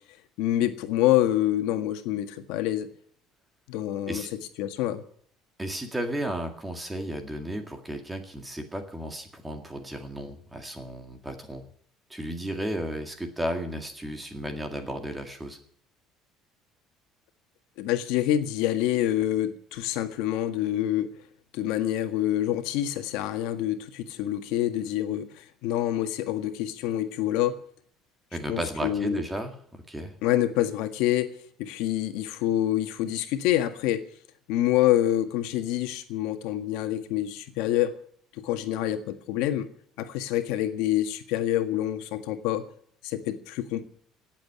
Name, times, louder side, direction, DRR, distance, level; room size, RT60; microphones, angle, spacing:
voice 1, 0.4-2.9 3.7-4.3 4.6-5.0 17.8-21.1 21.5-27.6 28.5-29.2 30.2-31.3 31.6-34.1 34.5-38.0 38.3-39.7 40.0-42.6 43.0-43.8, left 13 dB, 75° left, 8 dB, 1.7 m, -26 dB
voice 2, 5.6-11.6 12.1-15.6 28.3-29.5 29.9-30.1, right 1 dB, 10° right, 6 dB, 2.0 m, -34 dB
18.0 x 7.7 x 9.9 m, 0.63 s
cardioid pair, 175°, 0 cm